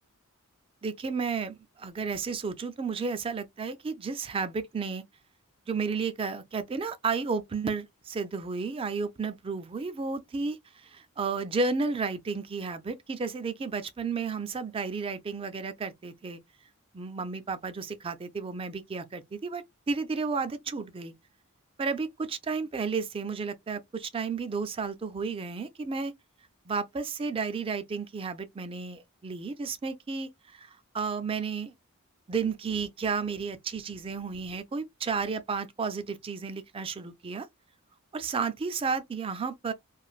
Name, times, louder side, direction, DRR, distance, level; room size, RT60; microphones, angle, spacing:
voice 1, 0.8-5.0 5.7-16.4 16.9-21.1 21.8-26.1 26.7-31.7 32.3-37.5 38.1-39.7, right 4 dB, 25° right, 0.3 m, -32 dB
3.1 x 2.5 x 2.3 m
head